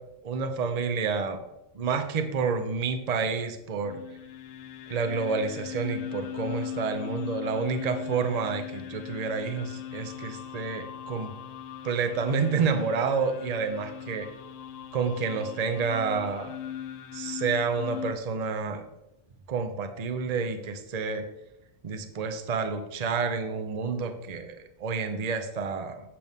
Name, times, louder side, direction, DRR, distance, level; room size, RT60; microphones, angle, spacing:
voice 1, 0.2-1.4 1.7-4.0 4.9-11.3 11.8-14.3 14.9-16.6 17.1-18.8 19.5-21.2 21.8-24.5 24.8-26.0, right 5 dB, 40° right, 8 dB, 0.7 m, -29 dB
sound 1, 3.8-18.1, left 10 dB, 90° left, 1.0 m, -39 dB
8.5 x 6.9 x 3.5 m, 0.87 s
omnidirectional pair, 1.3 m